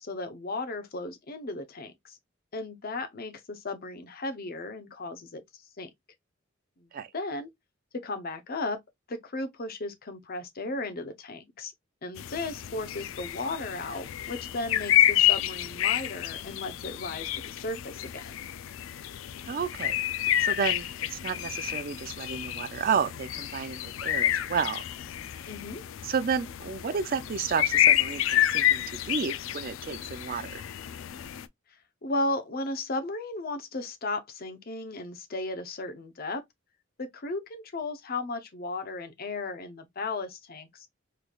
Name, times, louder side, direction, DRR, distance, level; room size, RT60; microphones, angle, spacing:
voice 1, 0.0-2.2 2.5-5.9 7.1-7.5 7.9-8.8 9.1-11.7 12.0-18.3 25.5-25.8 32.0-36.4 37.0-40.9, left 2 dB, 50° left, 0.7 m, -35 dB
sound 1, 12.2-31.5, left 12 dB, 85° left, 0.3 m, -29 dB
voice 2, 19.5-20.0 20.4-24.8 26.0-30.6, right 6 dB, 45° right, 0.4 m, -31 dB
3.8 x 3.3 x 2.3 m
head